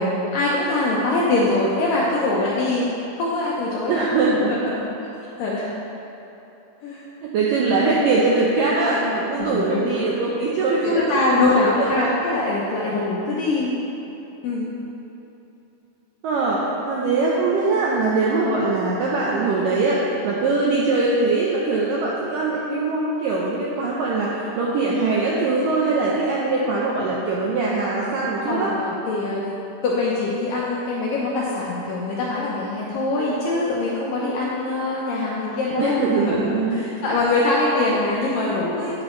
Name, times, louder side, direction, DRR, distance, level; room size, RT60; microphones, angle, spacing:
voice 1, 0.0-2.9 3.2-4.1 4.5-4.9 5.4-5.7 6.8-7.0 9.4-10.1 10.8-13.7 14.4-14.7 28.5-29.5 29.8-39.0, left 2 dB, 75° left, -5 dB, 2.0 m, -23 dB
voice 2, 3.9-4.5 7.2-12.1 16.2-28.7 35.8-36.7, right 3 dB, 80° right, -5 dB, 1.9 m, -22 dB
9.6 x 9.5 x 3.1 m, 3.0 s
omnidirectional pair, 4.9 m